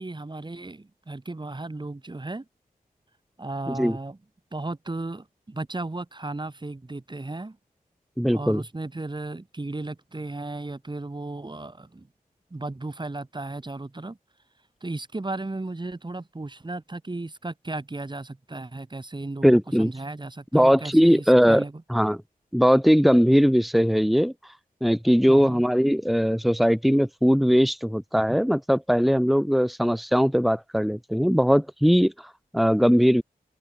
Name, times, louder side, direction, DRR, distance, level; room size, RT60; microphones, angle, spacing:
voice 1, 0.0-2.5 3.4-4.2 4.5-7.6 8.3-12.1 12.5-14.2 14.8-21.7 25.3-25.6, right 2 dB, 30° right, 5.9 m, -35 dB
voice 2, 8.2-8.6 19.4-19.9 20.5-21.6 21.9-22.2 22.5-24.3 24.8-33.2, equal, ahead, 3.8 m, -20 dB
wide cardioid pair, 70°, 15 cm